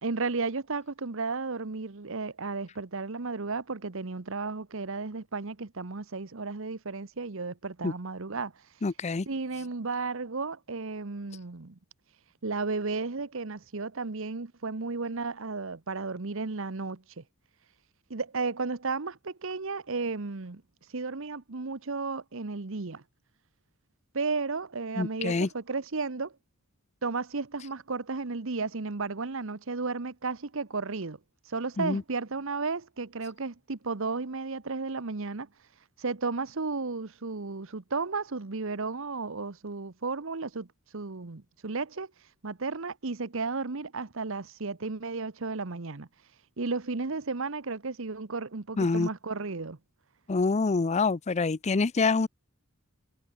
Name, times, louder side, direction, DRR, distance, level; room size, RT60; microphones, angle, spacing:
voice 1, 0.0-8.5 9.3-11.8 12.4-17.2 18.1-20.6 20.9-23.0 24.1-26.3 27.0-31.2 31.5-35.5 36.0-40.7 40.9-42.1 42.4-46.1 46.6-49.8, right 4 dB, 65° right, 1.0 m, -33 dB
voice 2, 8.8-9.3 25.0-25.5 31.8-32.0 48.8-49.1 50.3-52.3, left 4 dB, 30° left, 0.5 m, -26 dB
head